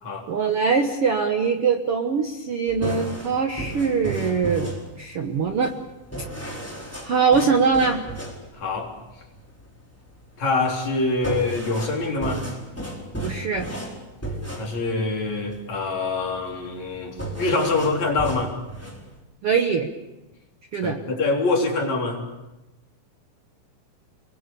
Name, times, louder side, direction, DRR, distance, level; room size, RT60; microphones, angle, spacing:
voice 1, 0.3-5.7 7.0-8.0 13.2-13.7 19.4-19.9 20.7-21.0, right 5 dB, 55° right, 5 dB, 1.7 m, -22 dB
sound 1, 2.7-19.2, right 1 dB, 5° left, 3.9 m, -34 dB
voice 2, 8.6-8.9 10.4-12.4 14.6-18.5 20.8-22.3, left 3 dB, 50° left, 0 dB, 4.7 m, -25 dB
29.5 x 21.5 x 6.9 m, 1.0 s
omnidirectional pair, 4.1 m